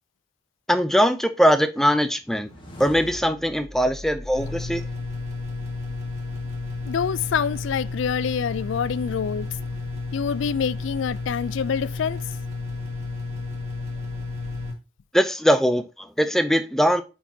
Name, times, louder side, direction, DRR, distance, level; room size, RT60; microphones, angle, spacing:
voice 1, 0.7-2.5 2.8-4.8 15.1-17.0, equal, ahead, 0.5 m, -21 dB
sound 1, 2.2-5.4, left 1 dB, 25° left, 1.6 m, -42 dB
sound 2, 4.3-14.7, left 3 dB, 35° right, 1.6 m, -32 dB
voice 2, 6.9-9.5 10.1-12.2, left 7 dB, 70° left, 0.3 m, -26 dB
8.7 x 4.6 x 2.8 m
head